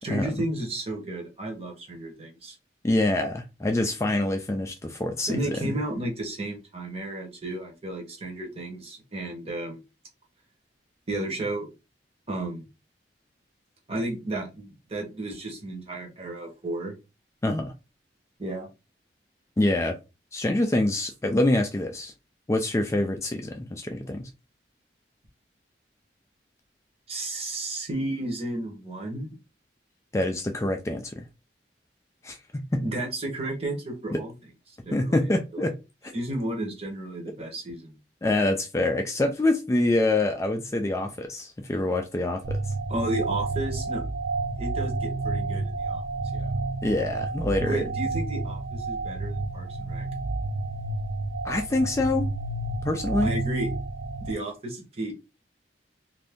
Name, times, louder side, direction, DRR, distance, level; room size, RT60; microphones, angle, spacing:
voice 1, 0.0-2.6 5.3-9.8 11.1-11.7 12.3-12.7 13.9-16.9 18.4-18.7 27.1-29.3 32.8-34.3 34.8-35.6 36.1-38.0 42.9-44.0 44.6-46.0 46.3-46.5 47.6-50.1 53.2-53.7 54.2-55.1, right 1 dB, 35° right, 1.0 m, -33 dB
voice 2, 2.8-5.8 17.4-17.7 19.6-20.0 20.3-22.1 22.5-24.3 30.1-31.3 32.2-32.8 34.1-34.2 34.9-35.7 36.0-36.1 38.2-42.6 46.8-47.8 51.4-52.3 52.8-53.3, left 2 dB, 15° left, 0.3 m, -25 dB
sound 1, 42.4-54.3, right 3 dB, 70° right, 0.4 m, -30 dB
2.6 x 2.5 x 3.4 m
head